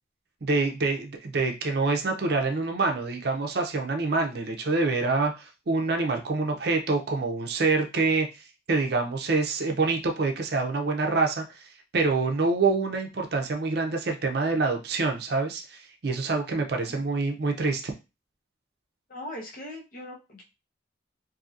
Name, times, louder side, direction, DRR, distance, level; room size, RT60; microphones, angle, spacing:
voice 1, 0.4-8.3 8.7-11.6 11.9-17.9, right 3 dB, 55° right, 3 dB, 0.5 m, -26 dB
voice 2, 19.1-20.4, left 1 dB, 45° left, -1 dB, 0.8 m, -40 dB
2.7 x 2.7 x 2.4 m, 0.27 s
head